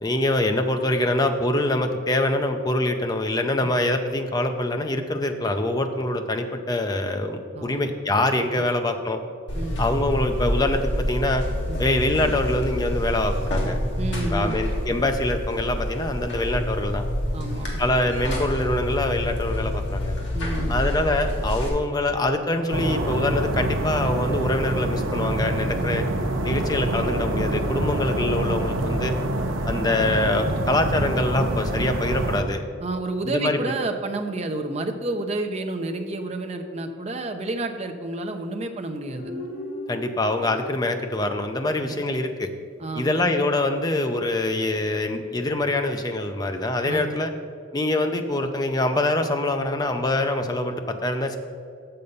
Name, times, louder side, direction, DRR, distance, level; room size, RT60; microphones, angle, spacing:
voice 1, 0.0-9.2 9.8-11.4 11.8-13.8 14.3-17.1 17.8-20.2 20.7-26.1 26.4-29.2 29.7-32.6 33.2-33.6 39.9-42.5 43.0-47.3 47.7-51.4, left 1 dB, 20° left, 6 dB, 0.5 m, -24 dB
voice 2, 7.5-7.9 9.5-9.8 11.7-11.8 14.0-14.6 17.3-17.8 20.3-20.9 25.8-26.0 32.8-39.3 41.9-42.0 42.8-43.1 46.8-47.1, right 2 dB, 35° right, 5 dB, 0.6 m, -30 dB
Buzz, 9.5-21.7, left 1 dB, 65° left, 1.8 m, -28 dB
sound 1, 22.7-32.4, right 1 dB, 85° right, 0.8 m, -26 dB
Guitar, 39.2-42.5, left 1 dB, 45° left, 1.2 m, -39 dB
6.8 x 6.8 x 5.4 m, 2.3 s
head